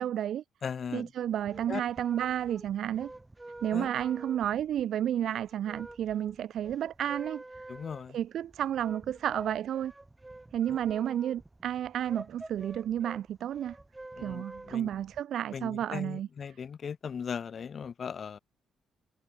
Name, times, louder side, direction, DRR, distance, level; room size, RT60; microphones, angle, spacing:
voice 1, 0.0-0.4 0.9-3.1 3.6-7.4 8.1-9.9 10.5-13.8 14.2-16.3, right 10 dB, 70° right, 0.4 m, -31 dB
voice 2, 0.6-1.1 1.7-1.8 3.7-3.9 7.7-8.2 14.2-14.9 15.5-18.4, left 6 dB, 50° left, 1.1 m, -38 dB
sound 1, 1.2-15.2, right 2 dB, 15° right, 6.6 m, -48 dB
cardioid pair, 90°, 0 cm